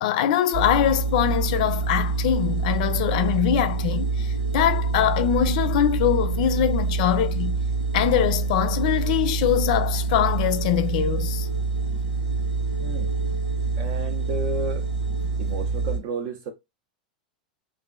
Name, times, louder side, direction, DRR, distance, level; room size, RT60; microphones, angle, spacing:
voice 1, 0.0-7.6 7.9-11.5, left 10 dB, 60° left, 0.4 m, -23 dB
sound 1, 0.5-16.0, right 4 dB, 90° right, 0.8 m, -26 dB
voice 2, 12.8-13.1 13.8-14.9 15.4-16.5, right 3 dB, 55° right, 0.4 m, -32 dB
3.0 x 2.4 x 2.2 m
hypercardioid pair, 95°, 5 cm